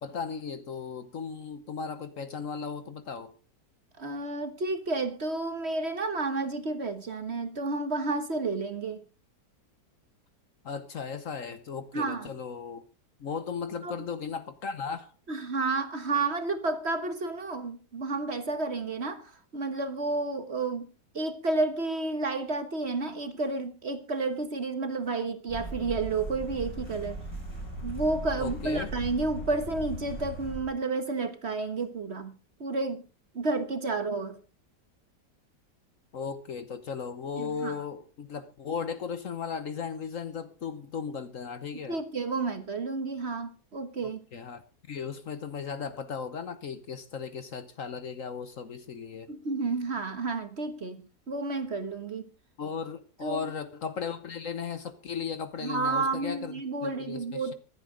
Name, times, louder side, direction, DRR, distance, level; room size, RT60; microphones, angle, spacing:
voice 1, 0.0-3.3 10.6-12.8 13.2-15.1 28.4-28.9 36.1-42.0 44.0-49.3 52.6-56.5 56.8-57.5, left 6 dB, 55° left, 1.2 m, -36 dB
voice 2, 4.0-9.0 11.9-12.3 13.8-13.9 15.3-20.9 21.1-27.2 27.8-32.3 32.6-33.0 33.3-34.4 37.4-37.7 41.9-44.2 49.3-51.0 51.3-52.3 53.2-53.4 55.6-57.5, right 3 dB, 40° right, 1.4 m, -31 dB
sound 1, 25.5-30.6, right 1 dB, 15° left, 5.9 m, -38 dB
25.0 x 8.3 x 3.8 m
omnidirectional pair, 1.8 m